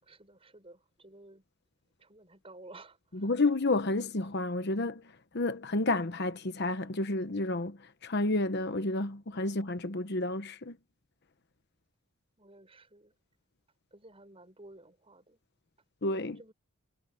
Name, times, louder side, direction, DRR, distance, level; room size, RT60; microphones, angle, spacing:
voice 1, 0.0-1.4 2.0-3.3 12.4-13.2 13.9-15.4 16.3-16.5, right 2 dB, 25° right, 6.3 m, -54 dB
voice 2, 3.1-5.0 5.3-7.8 8.0-10.8 16.0-16.4, left 2 dB, 50° left, 1.0 m, -30 dB
head